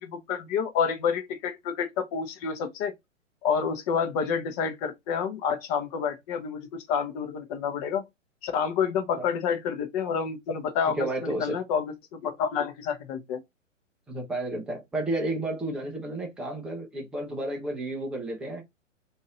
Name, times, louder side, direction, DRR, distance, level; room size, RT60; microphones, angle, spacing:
voice 1, 0.0-2.9 3.4-8.0 8.4-13.4, left 6 dB, 30° left, 0.8 m, -29 dB
voice 2, 10.9-11.6 14.1-18.6, right 1 dB, ahead, 0.4 m, -31 dB
3.9 x 2.6 x 3.5 m
figure-of-eight pair, 120°, 39 cm